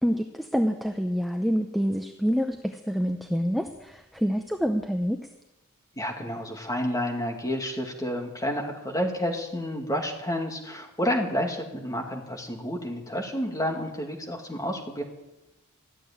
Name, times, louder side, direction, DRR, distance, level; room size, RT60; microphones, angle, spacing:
voice 1, 0.0-5.2, equal, ahead, 5 dB, 0.6 m, -27 dB
voice 2, 6.0-15.0, equal, 15° left, 2 dB, 2.2 m, -30 dB
14.5 x 8.4 x 9.9 m, 1.0 s
head